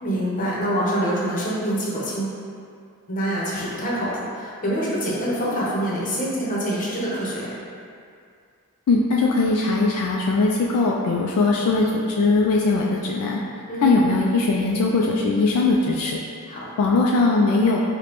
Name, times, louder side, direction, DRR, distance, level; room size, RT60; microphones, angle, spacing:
voice 1, 0.0-2.4 3.1-7.6 13.7-14.0 16.5-16.7, right 1 dB, 35° left, -6 dB, 0.8 m, -25 dB
voice 2, 8.9-13.4 13.8-16.2 16.8-17.8, left 3 dB, 75° left, -2 dB, 0.3 m, -20 dB
4.9 x 2.2 x 3.0 m, 2.3 s
head